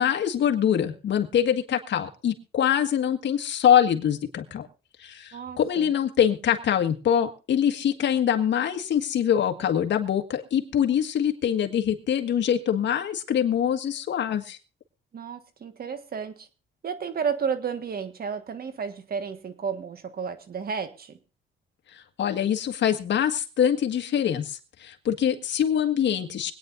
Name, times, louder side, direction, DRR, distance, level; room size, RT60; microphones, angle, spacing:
voice 1, 0.0-4.7 5.0-14.6 21.9-26.5, left 9 dB, 65° left, 5 dB, 1.7 m, -24 dB
voice 2, 5.3-5.9 15.1-16.5 16.8-21.2, right 6 dB, 50° right, 10 dB, 1.5 m, -32 dB
24.5 x 9.4 x 2.6 m, 0.34 s
cardioid pair, 90°, 20 cm